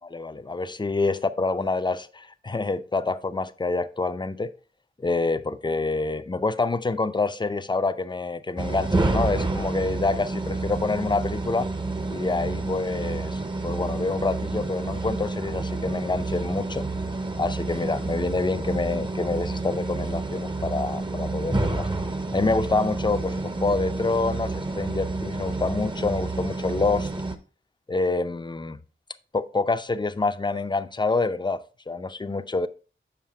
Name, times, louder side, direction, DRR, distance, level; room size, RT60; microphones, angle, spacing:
voice 1, 0.0-4.5 5.0-11.7 12.1-16.8 17.4-21.9 22.3-27.1 27.9-28.8 29.3-32.7, left 3 dB, 20° left, 0.5 m, -27 dB
sound 1, 8.6-27.4, right 3 dB, 20° right, 0.7 m, -29 dB
7.4 x 5.6 x 3.4 m
wide cardioid pair, 55°, 21 cm